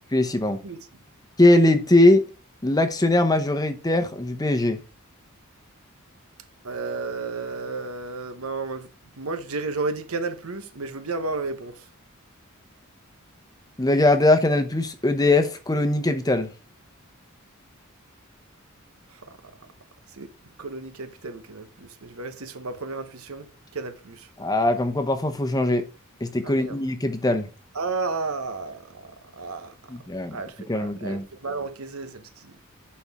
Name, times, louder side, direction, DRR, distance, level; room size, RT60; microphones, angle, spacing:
voice 1, 0.1-0.6 1.4-2.2 2.6-4.8 13.8-16.5 24.4-25.9 26.2-27.5 29.9-30.4 30.7-31.2, left 2 dB, 15° left, 0.9 m, -21 dB
voice 2, 6.6-8.9 9.2-11.8 19.1-19.4 20.1-20.3 20.6-24.3 26.4-26.8 27.7-29.8 30.3-32.5, right 3 dB, 80° right, 1.0 m, -33 dB
10.5 x 4.4 x 3.5 m
head